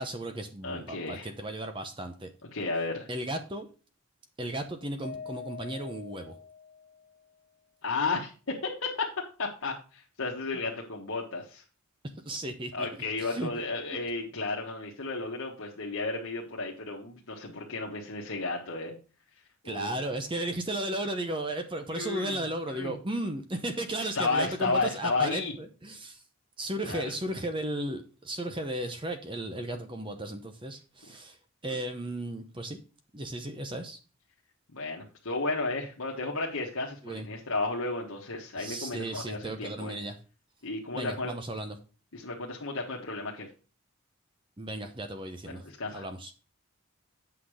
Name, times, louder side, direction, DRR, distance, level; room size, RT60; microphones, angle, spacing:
voice 1, 0.0-2.3 3.1-3.7 4.4-6.4 12.2-13.5 19.6-26.2 26.6-32.8 33.1-34.0 37.0-37.3 38.6-40.2 40.9-41.8 44.6-45.6 45.9-46.3, right 1 dB, 25° right, 6 dB, 0.8 m, -35 dB
voice 2, 0.6-1.3 2.5-3.1 7.8-9.1 9.4-11.6 12.7-18.9 19.6-19.9 21.9-22.4 22.7-22.9 24.0-25.5 26.8-27.0 34.7-39.9 40.6-41.3 42.1-43.5 45.5-46.0, left 3 dB, 75° left, -3 dB, 1.4 m, -33 dB
Mallet percussion, 5.0-7.3, left 5 dB, 40° left, 1.3 m, -44 dB
8.3 x 5.9 x 4.9 m, 0.35 s
head